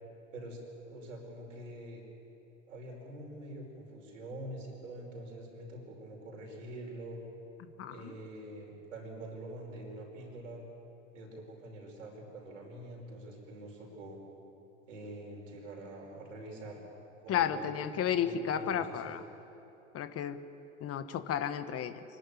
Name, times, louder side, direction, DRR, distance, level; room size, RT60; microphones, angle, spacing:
voice 1, 0.3-2.0 2.7-7.2 7.9-10.6 11.1-14.2 14.9-16.8 17.2-17.7 18.2-19.1, right 1 dB, 80° right, -1 dB, 5.3 m, -45 dB
voice 2, 7.8-8.1 17.3-19.2 19.9-20.4 20.8-22.0, left 9 dB, 40° left, 11 dB, 1.2 m, -33 dB
25.5 x 12.0 x 9.7 m, 2.9 s
hypercardioid pair, 75°, 37 cm